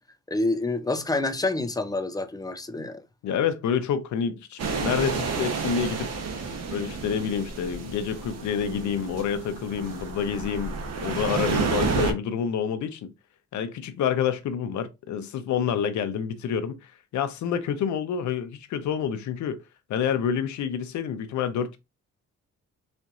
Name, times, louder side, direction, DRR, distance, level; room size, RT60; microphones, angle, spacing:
voice 1, 0.3-3.0, left 2 dB, 15° left, 0.4 m, -27 dB
voice 2, 3.2-6.1 6.7-10.7 11.0-13.1 13.5-19.6 19.9-21.8, left 7 dB, 75° left, 0.7 m, -28 dB
sound 1, 4.6-12.1, right 4 dB, 60° right, 1.0 m, -30 dB
4.2 x 2.5 x 2.4 m
cardioid pair, 110°, 29 cm